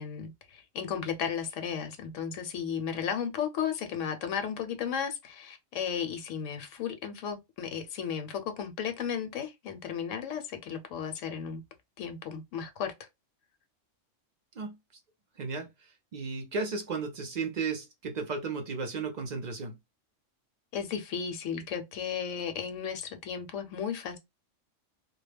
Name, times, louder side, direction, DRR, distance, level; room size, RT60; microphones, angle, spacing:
voice 1, 0.0-11.6 12.0-12.9 20.7-24.2, left 7 dB, 80° left, 0.9 m, -34 dB
voice 2, 15.4-19.8, right 4 dB, 60° right, 0.4 m, -34 dB
2.2 x 2.0 x 3.2 m
omnidirectional pair, 1.3 m